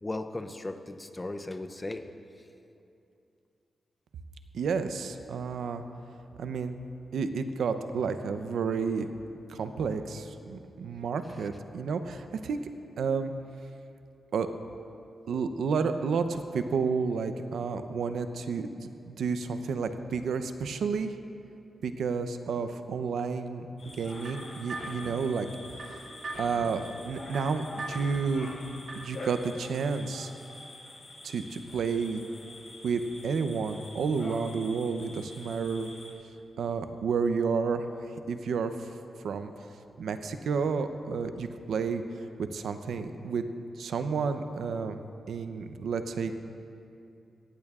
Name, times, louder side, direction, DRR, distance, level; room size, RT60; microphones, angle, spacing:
voice 1, 0.0-2.0, left 2 dB, 15° left, 8 dB, 0.5 m, -36 dB
voice 2, 4.5-5.8 6.4-6.7 7.1-9.1 9.5-12.6 13.0-13.3 14.3-14.5 15.3-21.2 21.8-23.7 24.0-25.5 25.8-26.0 26.4-28.5 28.9-30.3 31.2-32.2 32.8-35.9 36.6-37.9 38.3-38.7 39.2-39.5 40.0-42.0 42.5-43.5 43.8-45.0 45.3-46.4, right 5 dB, 90° right, 9 dB, 0.6 m, -31 dB
sound 1, 23.8-36.1, left 2 dB, 55° left, 3.4 m, -46 dB
sound 2, 23.8-29.2, right 1 dB, 45° right, 2.3 m, -42 dB
17.0 x 15.5 x 2.4 m, 2.7 s
wide cardioid pair, 175°, 0 cm